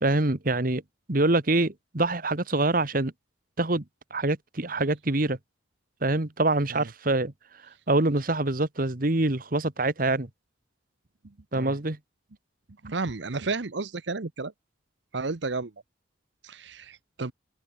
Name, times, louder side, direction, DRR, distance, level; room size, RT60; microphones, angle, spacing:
voice 1, 0.0-0.8 1.1-3.1 3.6-3.8 4.1-5.4 6.0-7.3 7.9-10.3 11.5-12.0, right 2 dB, 45° right, 1.6 m, -25 dB
voice 2, 12.8-14.5 15.1-15.7 16.4-17.3, right 3 dB, 70° right, 1.0 m, -32 dB
open air
head